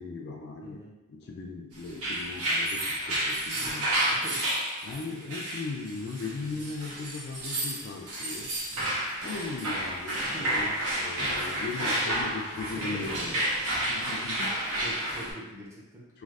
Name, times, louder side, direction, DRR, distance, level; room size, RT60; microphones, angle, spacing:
voice 1, 0.0-0.8 1.1-3.9 4.8-8.5 9.2-13.3 13.9-14.5 16.1-16.2, left 3 dB, 50° left, 1 dB, 0.3 m, -38 dB
voice 2, 0.6-0.9 3.5-4.4 6.4-6.7 8.7-9.0 10.2-10.6 12.0-12.2 12.8-13.4 13.9-16.2, equal, 15° right, -6 dB, 0.6 m, -44 dB
sound 1, 1.9-15.3, right 1 dB, 90° right, 0.9 m, -30 dB
3.2 x 2.4 x 2.3 m, 1.0 s
head